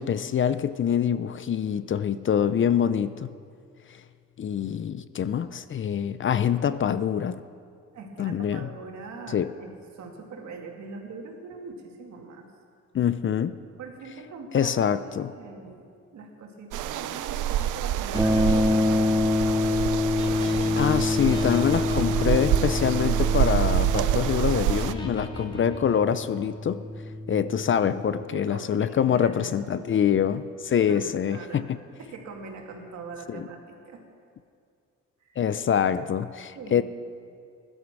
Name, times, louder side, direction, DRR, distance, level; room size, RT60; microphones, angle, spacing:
voice 1, 0.0-3.3 4.4-7.4 8.2-8.7 9.3-9.5 12.9-13.6 14.5-15.3 20.8-26.8 27.3-31.6 33.3-33.5 35.4-36.8, left 8 dB, 40° left, 14 dB, 0.5 m, -25 dB
voice 2, 7.9-12.5 13.8-15.9 16.1-19.3 27.7-27.9 28.3-29.9 30.8-31.7 32.0-34.0 35.2-35.4 36.5-36.8, right 4 dB, 65° right, 1 dB, 2.4 m, -42 dB
sound 1, 16.7-24.9, right 11 dB, 85° right, 0.6 m, -27 dB
sound 2, 18.1-23.4 24.7-26.6, equal, 15° left, 2.1 m, -40 dB
sound 3, 18.1-28.2, left 2 dB, 10° right, 0.7 m, -27 dB
15.5 x 11.5 x 6.1 m, 2.3 s
cardioid pair, 90°, 30 cm